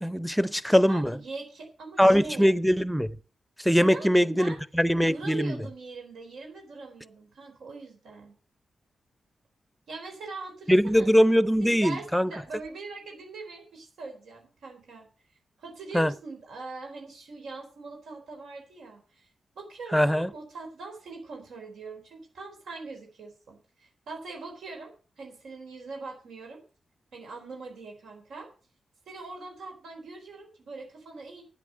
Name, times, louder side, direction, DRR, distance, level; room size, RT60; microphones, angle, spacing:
voice 1, 0.0-1.2 2.0-3.1 3.6-5.6 10.7-12.3 15.9-16.1 19.9-20.3, equal, ahead, 0.7 m, -22 dB
voice 2, 0.6-2.5 3.8-4.6 5.0-8.3 9.9-11.1 11.6-15.1 15.6-19.3 19.6-26.6 27.1-28.5 29.1-31.4, right 3 dB, 85° right, 4.3 m, -42 dB
8.7 x 8.5 x 7.8 m
cardioid pair, 105°, 0 cm